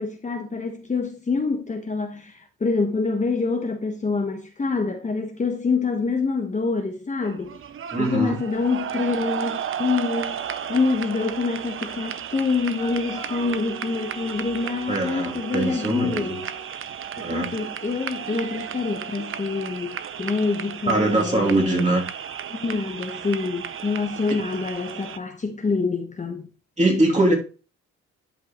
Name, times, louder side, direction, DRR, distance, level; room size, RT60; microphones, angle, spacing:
voice 1, 0.0-7.6 8.0-16.5 17.2-21.9 22.5-26.5, left 4 dB, 25° left, 1.1 m, -26 dB
sound 1, 7.2-25.2, right 8 dB, 45° right, 0.7 m, -34 dB
voice 2, 7.9-8.4 14.9-16.4 17.2-17.5 20.9-22.0 26.8-27.3, right 2 dB, 25° right, 2.6 m, -22 dB
Wind instrument woodwind instrument, 12.8-16.7, right 3 dB, 75° right, 3.3 m, -41 dB
10.5 x 5.6 x 3.0 m
cardioid pair, 90°, 30 cm